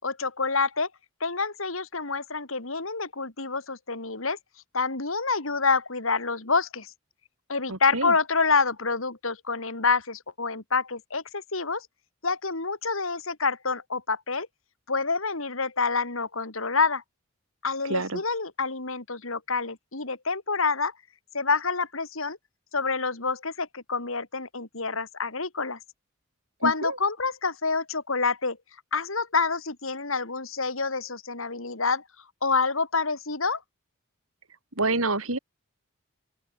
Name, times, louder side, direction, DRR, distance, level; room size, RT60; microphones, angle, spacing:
voice 1, 0.0-0.9 1.2-4.4 4.7-6.9 7.5-11.9 12.2-14.5 14.9-17.0 17.6-20.9 21.3-22.4 22.7-25.8 26.6-28.6 28.9-32.0 32.4-33.6, left 4 dB, 75° left, 2.9 m, -27 dB
voice 2, 7.7-8.1 17.9-18.2 26.6-27.0 34.8-35.4, right 2 dB, 85° right, 5.0 m, -27 dB
open air
head